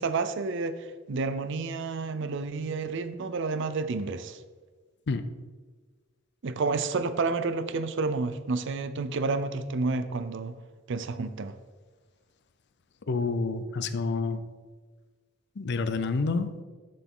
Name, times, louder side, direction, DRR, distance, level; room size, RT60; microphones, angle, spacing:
voice 1, 0.0-4.4 6.4-10.5 10.9-11.5, right 3 dB, 60° right, 12 dB, 0.5 m, -30 dB
voice 2, 13.1-14.4 15.6-16.5, left 4 dB, 55° left, 11 dB, 0.5 m, -28 dB
6.9 x 6.8 x 3.8 m, 1.4 s
head